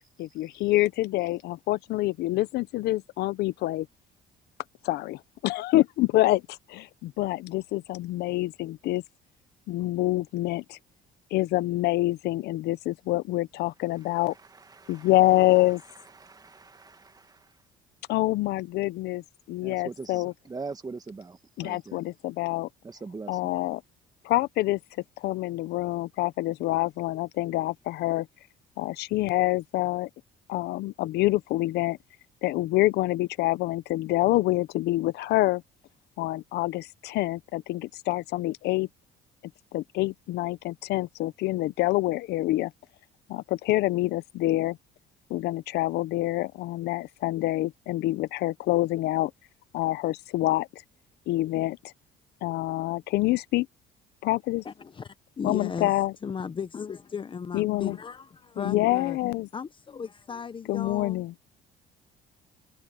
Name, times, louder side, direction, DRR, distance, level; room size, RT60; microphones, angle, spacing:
voice 1, 0.2-3.9 4.8-9.0 9.7-10.8 11.3-14.3 14.9-15.8 18.1-19.2 19.5-20.3 21.6-22.7 23.3-23.8 24.2-24.8 25.2-28.3 28.8-30.1 30.5-32.0 32.4-35.6 36.2-38.9 39.7-42.7 43.3-44.8 45.3-49.3 49.7-50.7 51.3-51.8 52.4-53.7 54.2-54.6 55.4-56.1 57.5-58.0 58.6-59.5 60.7-61.3, left 17 dB, 80° left, 0.7 m, -26 dB
voice 2, 14.3-15.1 16.1-17.5 19.6-22.0 22.8-23.5, right 4 dB, 20° right, 1.9 m, -42 dB
voice 3, 54.6-55.9 56.2-59.2 59.5-61.2, left 6 dB, 30° left, 0.8 m, -36 dB
open air
cardioid pair, 110°, 17 cm